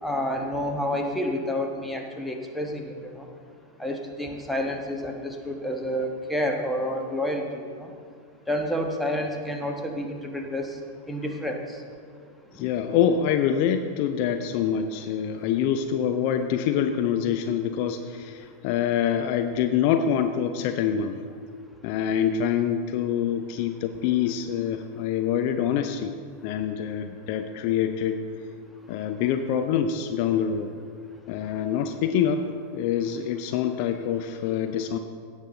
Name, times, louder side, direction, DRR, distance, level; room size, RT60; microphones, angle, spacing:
voice 1, 0.0-2.8 3.1-3.2 3.8-7.7 8.5-10.7 11.1-11.6, left 1 dB, 5° left, 2 dB, 1.2 m, -29 dB
voice 2, 12.6-21.2 21.8-26.1 26.4-28.2 28.9-30.7 31.3-32.5 32.7-35.0, left 8 dB, 45° left, 7 dB, 0.5 m, -25 dB
16.5 x 7.2 x 3.9 m, 2.1 s
figure-of-eight pair, 90°, 0 cm